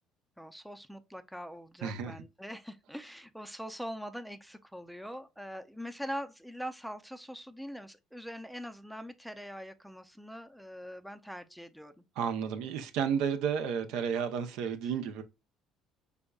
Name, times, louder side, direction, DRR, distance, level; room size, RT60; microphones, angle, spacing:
voice 1, 0.4-12.0 14.8-14.9, equal, ahead, 0.4 m, -43 dB
voice 2, 1.8-2.1 12.2-15.2, right 7 dB, 80° right, 0.6 m, -32 dB
5.2 x 3.4 x 2.3 m
cardioid pair, 125°, 0 cm